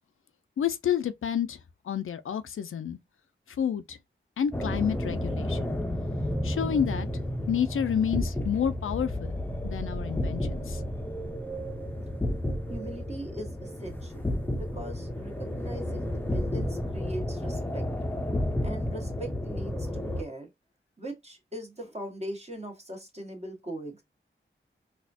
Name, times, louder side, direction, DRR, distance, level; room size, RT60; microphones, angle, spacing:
voice 1, 0.6-1.6 1.9-3.0 3.5-4.0 4.4-5.7 6.4-7.1 7.5-9.4 9.6-10.8, left 8 dB, 80° left, 0.4 m, -29 dB
sound 1, 4.5-20.2, left 1 dB, 10° left, 0.6 m, -32 dB
voice 2, 12.7-14.3 14.6-17.9 18.6-20.5 21.0-24.0, right 1 dB, 30° right, 1.4 m, -40 dB
4.1 x 2.4 x 2.7 m
cardioid pair, 55°, 21 cm